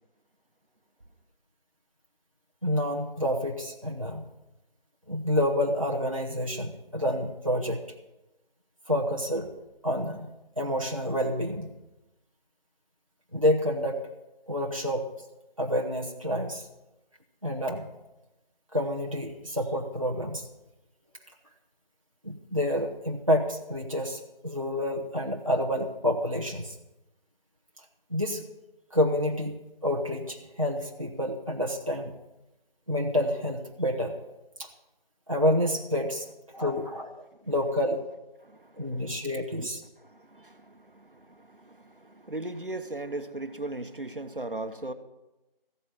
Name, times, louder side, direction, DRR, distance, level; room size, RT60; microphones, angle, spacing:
voice 1, 2.6-4.3 5.1-7.8 8.9-9.5 9.8-11.7 13.3-14.0 14.5-15.1 15.6-16.7 17.4-17.9 18.7-20.5 22.2-26.7 28.1-28.4 28.9-32.2 32.9-34.2 34.6-34.7 35.3-36.3 36.5-37.1 37.5-38.0 38.8-39.8, equal, 35° right, 0 dB, 0.9 m, -28 dB
voice 2, 38.4-39.2 39.6-39.7 40.0-44.9, right 2 dB, 65° right, 8 dB, 1.1 m, -38 dB
14.5 x 8.3 x 5.7 m, 0.98 s
figure-of-eight pair, 180°, 29 cm